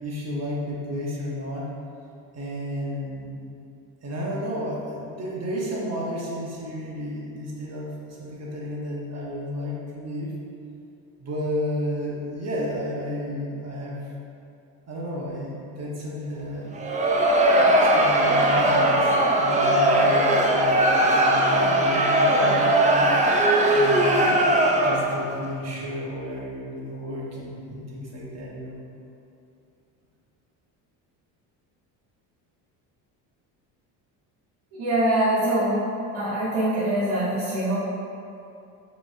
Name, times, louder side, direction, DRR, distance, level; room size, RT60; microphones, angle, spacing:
voice 1, 0.0-1.6 2.3-3.3 4.0-10.3 11.2-14.0 14.9-16.7 17.8-23.0 23.7-24.4 24.7-28.8, equal, 40° right, -5 dB, 1.1 m, -32 dB
Crowd, 16.7-25.2, right 1 dB, 20° right, 0.4 m, -19 dB
voice 2, 34.7-35.9 36.1-37.8, right 1 dB, 75° right, -12 dB, 1.2 m, -23 dB
4.9 x 3.2 x 2.5 m, 2.6 s
supercardioid pair, 90°, 42 cm